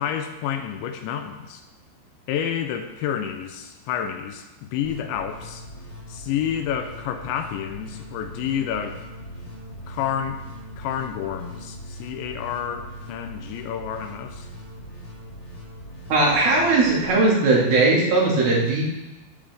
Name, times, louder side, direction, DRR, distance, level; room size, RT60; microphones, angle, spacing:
voice 1, 0.0-1.6 2.3-5.6 6.1-9.0 9.9-10.4 10.8-14.5, left 9 dB, 85° left, 7 dB, 2.9 m, -29 dB
sound 1, 4.8-17.1, equal, 55° left, 1.1 m, -40 dB
voice 2, 16.1-18.8, right 3 dB, 55° right, -4 dB, 3.5 m, -19 dB
17.0 x 9.0 x 3.6 m, 1.0 s
omnidirectional pair, 5.5 m